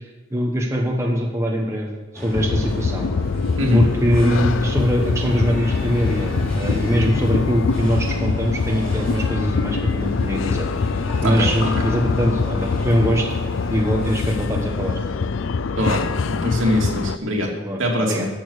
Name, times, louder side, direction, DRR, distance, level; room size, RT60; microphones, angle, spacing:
voice 1, 0.3-3.1 3.7-13.3 13.7-15.0 17.6-18.3, equal, 15° right, 0 dB, 1.2 m, -22 dB
sound 1, 2.1-14.4, equal, 5° left, 3.7 m, -34 dB
sound 2, 2.3-17.2, left 4 dB, 75° left, 0.5 m, -24 dB
voice 2, 16.3-17.5 17.8-18.3, left 1 dB, 75° right, -1 dB, 2.7 m, -21 dB
11.5 x 7.1 x 8.1 m, 1.2 s
head